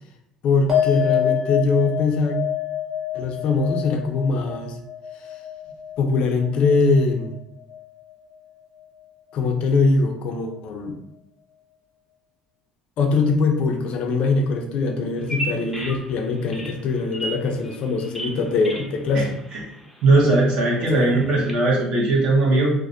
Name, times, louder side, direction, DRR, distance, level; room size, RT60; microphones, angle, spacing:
voice 1, 0.4-2.4 3.1-4.8 6.0-7.4 9.3-11.0 13.0-19.4 20.8-21.2, left 3 dB, 60° left, 3 dB, 0.5 m, -22 dB
sound 1, 0.7-7.4 7.7-8.3, left 9 dB, 35° right, 1.0 m, -27 dB
Bird vocalization bird call bird song, 15.2-21.5, right 1 dB, ahead, 0.5 m, -36 dB
voice 2, 20.0-22.7, right 2 dB, 60° right, -3 dB, 0.8 m, -18 dB
2.4 x 2.0 x 2.5 m, 0.78 s
supercardioid pair, 100°, 2 cm